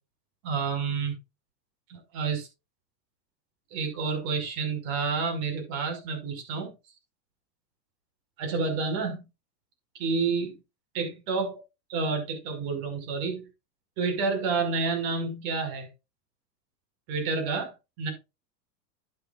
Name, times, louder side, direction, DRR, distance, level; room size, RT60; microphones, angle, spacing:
voice 1, 0.4-1.1 1.9-2.5 3.7-6.7 8.4-9.2 9.9-10.6 10.9-11.6 11.9-13.5 14.0-15.9 17.1-18.1, right 4 dB, 60° right, 5.8 m, -29 dB
11.0 x 10.5 x 2.5 m
supercardioid pair, 135°, 50 cm